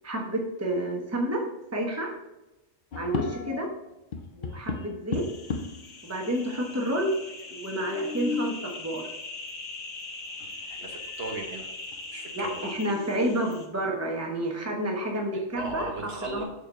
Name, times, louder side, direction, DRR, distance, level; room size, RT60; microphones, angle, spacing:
voice 1, 0.0-1.5 1.7-2.1 3.0-3.7 4.3-5.2 6.0-7.1 7.5-9.0 12.3-15.9 16.2-16.4, right 1 dB, 15° right, 1 dB, 1.1 m, -29 dB
sound 1, 2.9-3.8 4.1-5.9 6.6-6.7 6.9-7.0 7.7-8.7 10.4-10.5 11.0-11.5 11.9-12.0 12.5-13.4, left 5 dB, 55° left, 0.7 m, -35 dB
sound 2, 5.1-13.7, left 3 dB, 75° left, 1.4 m, -41 dB
voice 2, 10.7-11.7 12.1-12.6 15.3-16.4, right 2 dB, 55° right, 1 dB, 1.4 m, -37 dB
6.8 x 4.4 x 5.5 m, 1.0 s
omnidirectional pair, 1.3 m